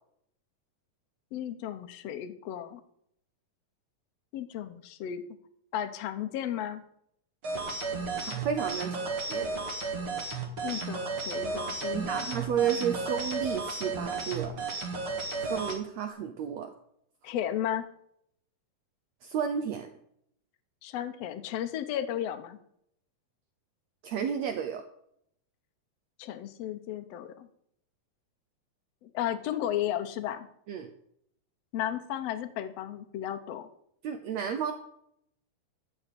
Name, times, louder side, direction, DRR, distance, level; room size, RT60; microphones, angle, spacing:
voice 1, 1.3-2.8 4.3-5.2 5.7-6.8 10.6-12.9 17.2-17.9 20.8-22.6 26.2-27.5 29.0-30.5 31.7-33.7, left 11 dB, 75° left, 7 dB, 1.5 m, -34 dB
sound 1, 7.4-15.8, right 3 dB, 45° right, 2.4 m, -33 dB
voice 2, 8.2-9.5 11.9-14.6 15.4-16.7 19.2-19.9 24.0-24.8 30.7-30.9 34.0-34.7, right 8 dB, 75° right, 7 dB, 1.6 m, -32 dB
13.0 x 5.5 x 8.4 m, 0.71 s
omnidirectional pair, 4.0 m